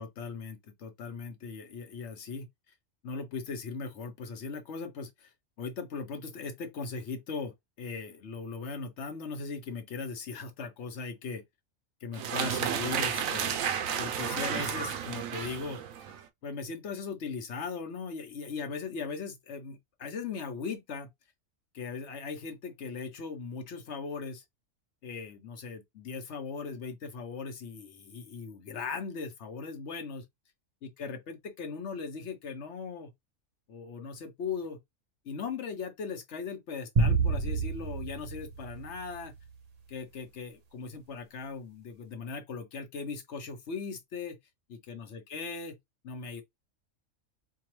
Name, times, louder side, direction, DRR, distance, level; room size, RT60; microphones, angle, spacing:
voice 1, 0.0-2.5 3.0-5.3 5.6-11.4 12.0-13.6 14.0-16.1 16.4-21.1 21.7-24.4 25.0-30.2 30.8-33.1 33.7-34.8 35.2-39.3 39.9-44.4 44.7-45.8 46.0-46.4, left 5 dB, 60° left, 1.0 m, -39 dB
sound 1, 12.1-16.2, right 8 dB, 90° right, 1.0 m, -32 dB
sound 2, 37.0-39.4, right 4 dB, 55° right, 0.4 m, -29 dB
4.4 x 2.3 x 3.0 m
omnidirectional pair, 1.4 m